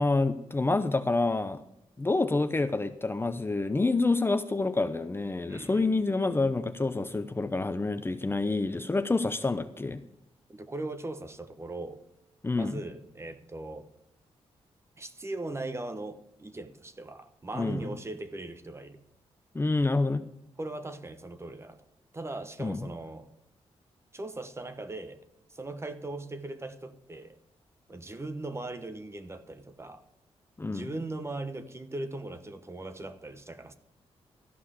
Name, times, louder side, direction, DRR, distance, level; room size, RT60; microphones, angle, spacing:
voice 1, 0.0-1.6 2.0-10.0 12.4-12.8 17.5-17.9 19.5-20.2 22.6-22.9 30.6-30.9, left 3 dB, 20° left, 0.7 m, -28 dB
voice 2, 5.5-6.0 10.5-12.0 12.5-13.9 15.0-19.0 20.6-21.8 22.1-23.3 24.1-25.2 25.5-27.4 27.9-30.0 30.7-33.7, right 2 dB, 25° right, 1.1 m, -39 dB
13.5 x 5.5 x 8.2 m
cardioid pair, 95°, 11 cm